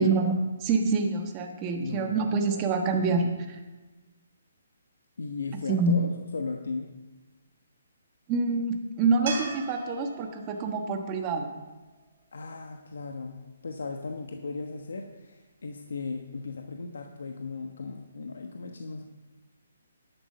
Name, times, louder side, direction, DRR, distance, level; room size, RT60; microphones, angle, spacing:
voice 1, 0.0-3.6 5.7-6.0 8.3-11.5, right 4 dB, 20° right, 4 dB, 1.3 m, -26 dB
voice 2, 1.8-2.2 2.5-2.6 2.9-3.0 5.2-6.9 12.3-19.0, left 4 dB, 85° left, 4 dB, 1.2 m, -36 dB
sound 1, 9.3-12.5 15.8-15.9, right 4 dB, 40° right, 3.1 m, -40 dB
11.5 x 9.0 x 6.7 m, 1.2 s
hypercardioid pair, 170°, 0 cm